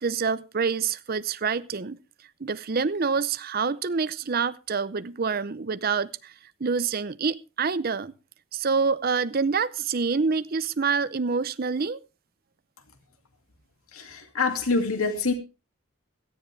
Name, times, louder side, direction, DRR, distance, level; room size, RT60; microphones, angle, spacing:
voice 1, 0.0-2.0 2.4-6.3 6.6-8.1 8.5-12.0, right 5 dB, 45° right, 15 dB, 0.6 m, -26 dB
voice 2, 13.9-15.3, left 4 dB, 85° left, 7 dB, 2.4 m, -26 dB
17.0 x 13.5 x 3.3 m, 0.30 s
head